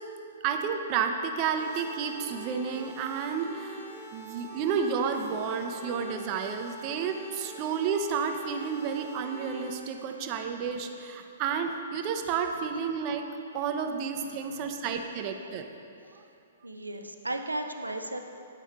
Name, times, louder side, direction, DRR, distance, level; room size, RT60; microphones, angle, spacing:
voice 1, 0.4-3.8 4.1-13.3 13.5-15.7, right 6 dB, 35° right, 5 dB, 0.5 m, -31 dB
sound 1, 1.5-9.7, right 2 dB, 60° left, 1.7 m, -45 dB
voice 2, 9.9-10.2 14.2-14.7 16.6-18.2, right 1 dB, 85° right, 6 dB, 0.5 m, -36 dB
8.9 x 4.9 x 4.0 m, 2.6 s
figure-of-eight pair, 115°, 0 cm